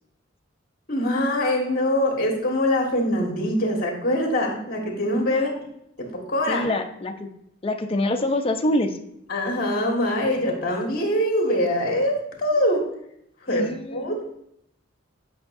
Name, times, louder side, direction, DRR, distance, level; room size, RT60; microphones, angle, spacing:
voice 1, 0.9-5.5 6.1-6.6 9.3-12.8 13.5-13.6 13.9-14.4, left 1 dB, 50° left, 0 dB, 1.7 m, -23 dB
voice 2, 6.5-7.3 7.6-9.0 13.5-14.1, left 1 dB, 30° left, 4 dB, 0.5 m, -25 dB
8.5 x 5.6 x 2.6 m, 0.75 s
head